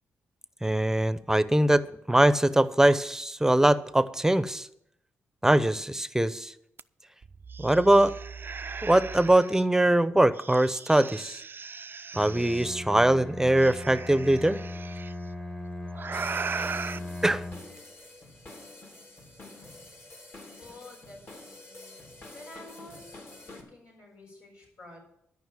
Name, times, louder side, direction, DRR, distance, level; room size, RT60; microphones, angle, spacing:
voice 1, 0.6-4.7 5.4-6.5 7.6-8.1 8.8-11.4 12.2-14.6 17.2-17.4, right 1 dB, 10° right, 15 dB, 0.8 m, -22 dB
sound 1, 6.8-6.9 7.2-9.6 10.3-12.7 13.6-15.1 15.9-17.0, right 5 dB, 40° right, 0.4 m, -38 dB
Bowed string instrument, 12.1-17.8, left 2 dB, 15° left, 1.3 m, -39 dB
sound 2, 16.1-23.6, left 2 dB, 45° left, 3.1 m, -48 dB
voice 2, 20.6-21.9 22.3-25.0, left 2 dB, 75° left, -3 dB, 6.0 m, -50 dB
13.0 x 5.6 x 9.1 m, 0.75 s
supercardioid pair, 55°, 6 cm